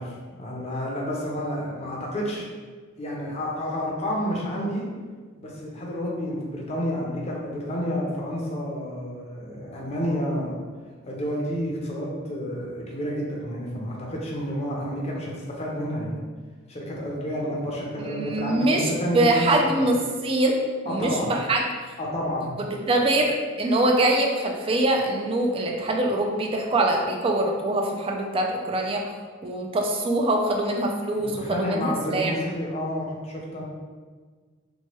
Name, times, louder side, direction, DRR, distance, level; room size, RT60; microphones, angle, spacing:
voice 1, 0.0-2.5 3.0-4.9 5.4-10.6 11.0-16.2 16.7-19.8 20.9-21.3 22.0-22.6 31.2-33.6, equal, 30° left, -3 dB, 0.6 m, -30 dB
voice 2, 18.0-20.6 20.8-21.6 22.7-29.1 29.4-32.3, right 1 dB, 25° right, 1 dB, 0.3 m, -23 dB
3.0 x 2.2 x 2.9 m, 1.5 s
head